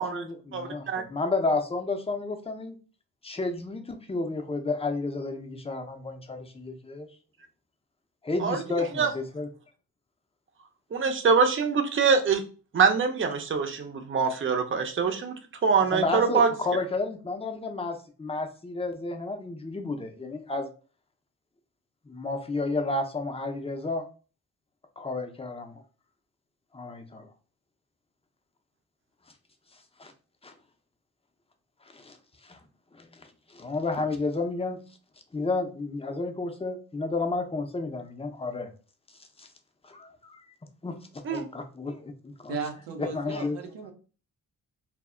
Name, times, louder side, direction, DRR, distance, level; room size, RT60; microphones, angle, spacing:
voice 1, 0.0-2.8 3.2-7.1 8.2-9.5 15.9-20.7 22.1-24.1 25.0-25.8 26.7-27.3 30.0-30.1 30.4-30.5 31.9-32.2 32.4-32.6 32.9-33.2 33.5-34.8 35.3-38.7 39.4-39.5 39.8-40.4 40.8-42.6 43.0-43.6, left 3 dB, 15° left, 6 dB, 0.6 m, -31 dB
voice 2, 0.5-1.0 8.4-9.1 10.9-12.4 12.7-15.3 15.6-16.5 41.2-41.4, right 5 dB, 30° right, 5 dB, 0.6 m, -24 dB
voice 3, 42.5-43.9, right 6 dB, 80° right, 2 dB, 0.6 m, -36 dB
2.1 x 2.0 x 3.6 m, 0.36 s
supercardioid pair, 50°, 42 cm